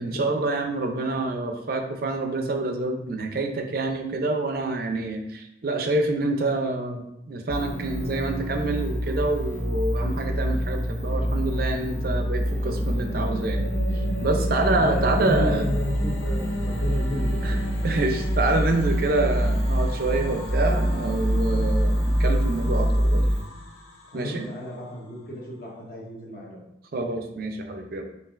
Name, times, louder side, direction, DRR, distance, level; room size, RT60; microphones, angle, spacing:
voice 1, 0.0-7.0 7.3-13.6 14.2-15.7 17.4-17.6 17.8-23.2 24.1-24.4 26.9-28.1, right 2 dB, 50° right, 5 dB, 0.5 m, -27 dB
sound 1, 7.5-23.4, equal, 10° left, 0.3 m, -26 dB
sound 2, 11.8-25.0, equal, 90° left, 0.8 m, -36 dB
voice 2, 14.7-17.5 24.1-26.6, left 1 dB, 50° left, -2 dB, 0.9 m, -33 dB
5.5 x 2.4 x 2.4 m, 0.86 s
head